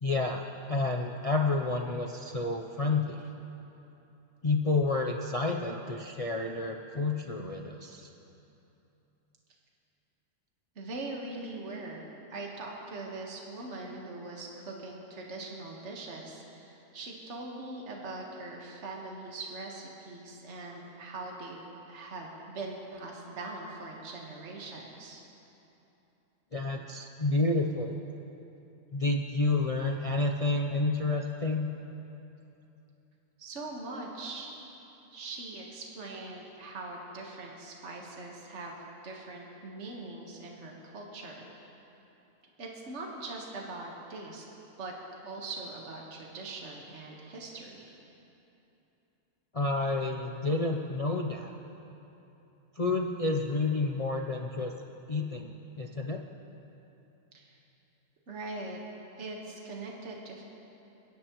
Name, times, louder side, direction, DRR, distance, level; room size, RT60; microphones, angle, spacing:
voice 1, 0.0-0.4 0.7-3.3 4.4-8.1 26.5-27.9 28.9-31.7 49.5-51.5 52.8-54.7 55.1-56.2, left 3 dB, 45° left, 1 dB, 0.4 m, -29 dB
voice 2, 10.8-25.2 33.4-34.5 35.1-38.8 39.0-41.5 42.6-44.4 44.8-44.9 45.2-47.8 57.3-57.6 58.3-58.8 59.2-60.4, right 2 dB, 50° right, -1 dB, 1.7 m, -41 dB
29.0 x 10.5 x 3.1 m, 3.0 s
omnidirectional pair, 1.6 m